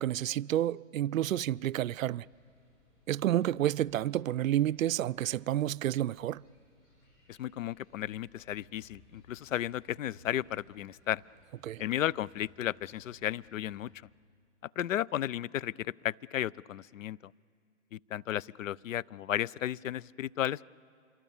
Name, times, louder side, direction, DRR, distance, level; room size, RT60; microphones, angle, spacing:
voice 1, 0.0-2.3 3.1-6.4 11.6-11.8, right 12 dB, 85° right, 0.5 m, -30 dB
sound 1, 1.0-13.9, equal, 25° left, 6.5 m, -64 dB
voice 2, 7.3-11.2 11.8-13.9 14.8-17.3 17.9-20.6, left 12 dB, 75° left, 0.5 m, -34 dB
26.5 x 23.5 x 7.3 m
hypercardioid pair, 160°, 39 cm